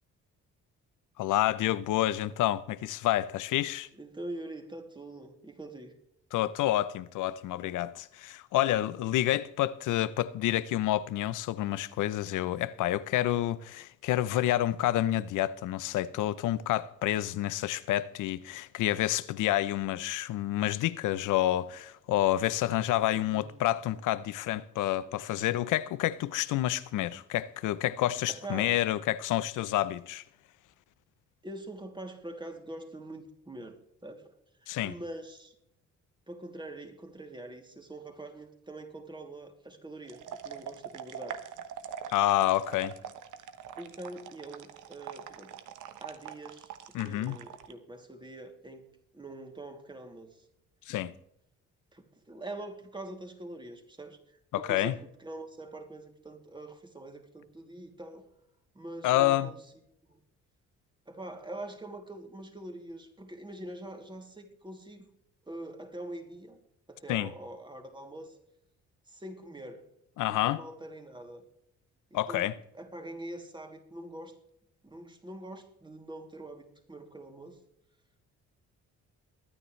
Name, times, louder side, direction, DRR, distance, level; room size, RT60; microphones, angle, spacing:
voice 1, 1.2-3.9 6.3-30.2 34.7-34.9 42.1-43.0 46.9-47.4 50.9-51.1 54.5-54.9 59.0-59.5 67.1-67.3 70.2-70.6 72.1-72.5, left 14 dB, 85° left, 0.8 m, -29 dB
voice 2, 4.0-6.0 23.1-23.6 28.3-28.8 31.4-33.8 34.0-34.4 34.6-35.6 36.3-41.4 43.8-45.5 46.0-46.7 47.0-48.9 49.1-50.4 51.9-58.3 58.7-59.6 60.1-60.2 61.1-65.0 65.5-66.6 66.9-68.4 69.1-69.8 70.3-71.4 72.1-74.4 74.8-77.6, right 1 dB, 15° right, 2.8 m, -44 dB
sound 1, 40.1-47.7, right 8 dB, 80° right, 1.2 m, -43 dB
22.5 x 9.8 x 3.2 m
cardioid pair, 90°, 30 cm